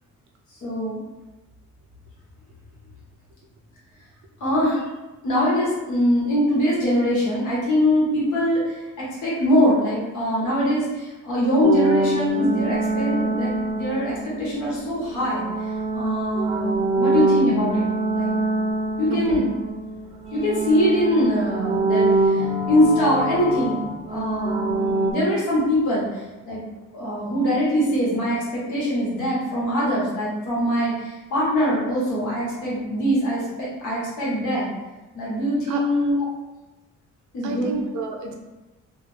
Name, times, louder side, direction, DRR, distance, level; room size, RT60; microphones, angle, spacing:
voice 1, 0.6-1.0 4.4-4.8 5.2-15.4 15.9-18.3 19.0-19.5 20.3-26.6 26.9-34.7 35.1-36.3 37.3-37.7, equal, 85° left, -6 dB, 1.3 m, -23 dB
sound 1, 11.6-14.5 15.2-20.0 20.3-25.1, right 2 dB, 20° right, 0.4 m, -24 dB
voice 2, 19.1-19.5 35.7-35.8 37.4-38.3, right 4 dB, 70° right, 2 dB, 0.6 m, -29 dB
2.3 x 2.3 x 3.3 m, 1.1 s
cardioid pair, 90°, 30 cm